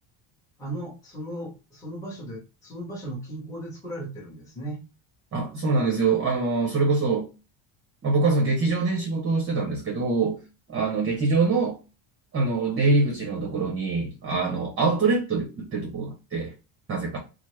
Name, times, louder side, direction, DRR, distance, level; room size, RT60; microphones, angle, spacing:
voice 1, 0.6-4.8, right 1 dB, 5° left, 1.0 m, -36 dB
voice 2, 5.3-7.3 8.0-10.4 10.7-11.8 12.3-16.5 16.9-17.2, right 3 dB, 25° right, 0.8 m, -24 dB
3.3 x 2.1 x 3.1 m
cardioid pair, 135°, 49 cm